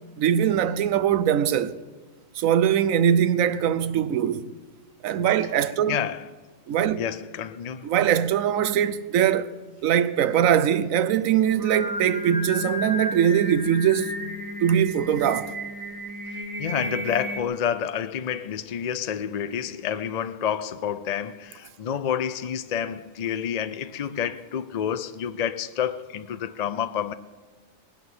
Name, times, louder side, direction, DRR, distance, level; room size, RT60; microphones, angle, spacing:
voice 1, 0.2-1.8 2.4-4.4 5.0-6.0 6.7-7.0 7.8-9.5 9.8-14.1 14.6-15.5, right 9 dB, 90° right, 1.1 m, -22 dB
voice 2, 5.9-6.3 7.0-7.9 16.3-27.1, left 8 dB, 60° left, 0.4 m, -29 dB
Singing, 11.4-17.4, equal, 15° right, 1.2 m, -33 dB
20.0 x 8.3 x 7.9 m
omnidirectional pair, 1.4 m